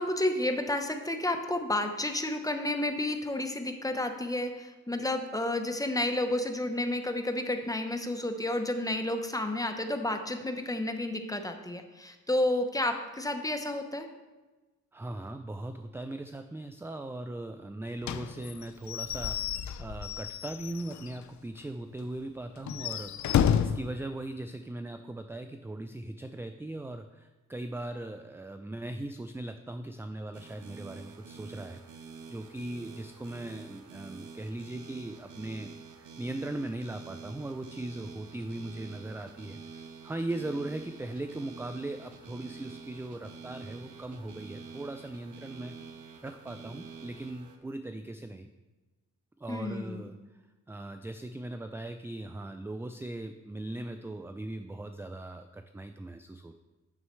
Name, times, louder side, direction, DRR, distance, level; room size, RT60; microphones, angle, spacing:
voice 1, 0.0-14.1 49.5-50.1, left 1 dB, 10° left, 6 dB, 0.8 m, -31 dB
voice 2, 14.9-23.3 23.5-32.0 32.3-39.6 40.0-45.7 46.2-48.5 49.4-50.4 50.7-56.6, right 2 dB, 10° right, 8 dB, 0.3 m, -39 dB
Slam / Squeak / Wood, 18.0-21.2 21.6-21.7 22.0-22.1 22.6-23.9, left 9 dB, 75° left, 0.4 m, -30 dB
sound 1, 30.3-47.6, right 5 dB, 90° right, 0.8 m, -47 dB
9.5 x 6.3 x 3.2 m, 1.2 s
cardioid pair, 70°, 29 cm